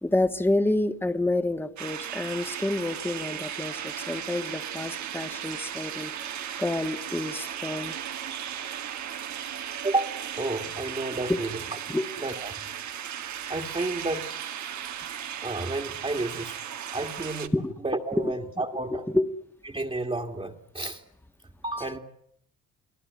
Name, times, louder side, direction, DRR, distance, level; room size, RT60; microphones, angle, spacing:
voice 1, 0.0-7.9 11.3-11.4 11.9-12.0 17.5-17.7 18.2-18.3 18.9-19.3, left 2 dB, 5° left, 9 dB, 1.5 m, -28 dB
sound 1, 1.8-17.5, right 9 dB, 70° right, 2.0 m, -36 dB
voice 2, 9.8-11.8 12.2-12.5 13.5-14.3 15.4-16.6 16.9-17.5 17.8-19.0 19.7-21.0 21.6-22.0, right 2 dB, 20° right, 1 dB, 2.0 m, -31 dB
29.5 x 19.0 x 9.5 m, 0.72 s
cardioid pair, 90°, 30 cm